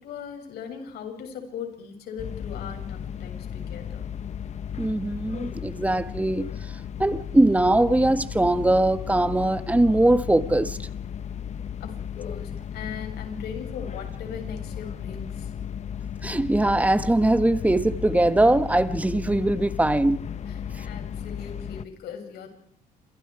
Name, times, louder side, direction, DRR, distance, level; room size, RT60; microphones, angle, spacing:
voice 1, 0.0-4.1 11.8-15.5 20.5-22.5, left 6 dB, 70° left, 7.5 m, -39 dB
sound 1, 2.2-21.8, left 8 dB, 40° left, 1.0 m, -35 dB
voice 2, 4.8-10.9 16.2-20.3 20.8-20.9, right 1 dB, 10° right, 1.4 m, -21 dB
28.0 x 26.5 x 5.0 m
cardioid pair, 110°, 17 cm